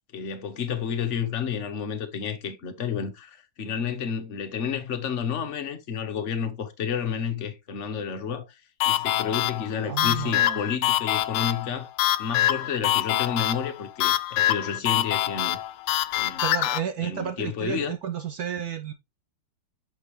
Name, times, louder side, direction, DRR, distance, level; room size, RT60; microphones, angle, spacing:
voice 1, 0.1-8.6 8.8-11.9 12.2-15.6 16.2-16.4 17.0-17.9, left 7 dB, 45° left, 1.1 m, -30 dB
sound 1, 8.8-16.8, left 13 dB, 80° left, 1.4 m, -25 dB
voice 2, 9.9-10.6 16.4-18.9, right 8 dB, 80° right, 0.8 m, -31 dB
8.6 x 3.8 x 3.2 m
omnidirectional pair, 2.4 m